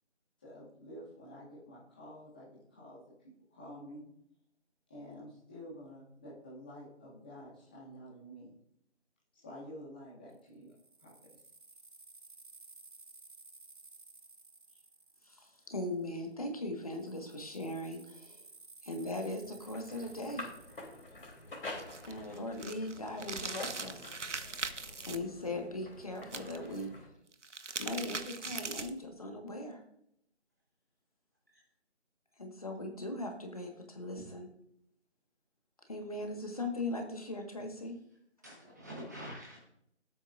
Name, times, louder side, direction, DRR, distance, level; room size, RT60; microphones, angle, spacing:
voice 1, 0.4-3.0 3.5-4.1 4.9-8.5 9.3-10.7 11.0-11.1 14.7-14.8, equal, 10° left, -7 dB, 1.5 m, -49 dB
sound 1, 10.3-16.2 16.8-22.2, right 3 dB, 45° right, 1.0 m, -57 dB
voice 2, 15.2-18.5 18.8-20.5 22.1-24.1 25.0-26.9 27.8-29.8 32.4-34.5 35.9-38.0, left 1 dB, 30° left, 3 dB, 1.5 m, -39 dB
sound 2, 19.3-27.1, left 2 dB, 50° left, 3.4 m, -48 dB
sound 3, 21.7-25.2 26.2-26.8 27.3-29.0, right 4 dB, 80° right, 1.2 m, -40 dB
voice 3, 38.4-39.6, equal, 15° right, -5 dB, 1.3 m, -46 dB
17.5 x 8.7 x 2.5 m, 0.73 s
figure-of-eight pair, 170°, 36 cm